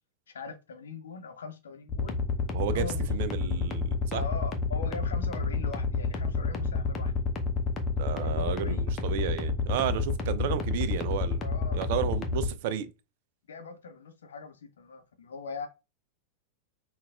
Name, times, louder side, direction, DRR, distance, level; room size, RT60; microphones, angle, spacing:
voice 1, 0.3-3.1 4.1-7.1 8.1-8.9 11.4-11.9 13.5-15.7, left 5 dB, 65° left, 0.7 m, -41 dB
sound 1, 1.9-12.5, left 4 dB, 25° left, 0.7 m, -29 dB
voice 2, 2.5-4.2 8.0-11.4 11.7-12.9, right 9 dB, 50° right, 0.4 m, -32 dB
5.7 x 2.3 x 2.4 m
figure-of-eight pair, 90°, 0 cm